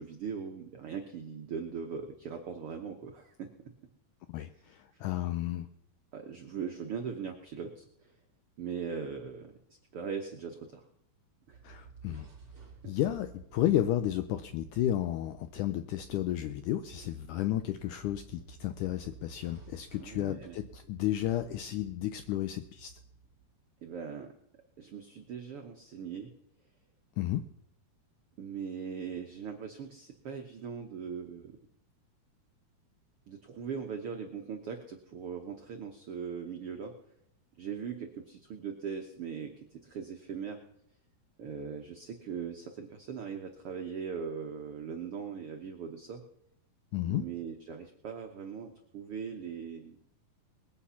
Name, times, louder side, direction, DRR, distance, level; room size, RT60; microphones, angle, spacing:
voice 1, 0.0-3.5 4.9-5.0 6.1-8.1 8.6-9.6 9.9-10.8 11.5-11.6 12.8-12.9 20.0-20.6 23.8-24.3 24.8-26.3 28.4-31.5 33.3-36.9 37.6-39.5 39.8-40.6 41.4-46.2 47.1-50.0, right 6 dB, 75° right, 3 dB, 1.3 m, -40 dB
voice 2, 4.3-5.7 11.6-12.3 12.8-23.0 27.2-27.4 46.9-47.2, left 13 dB, 80° left, 10 dB, 1.8 m, -32 dB
sound 1, 11.4-23.6, right 5 dB, 35° right, 3.6 m, -53 dB
21.0 x 8.5 x 5.7 m, 0.73 s
omnidirectional pair, 4.2 m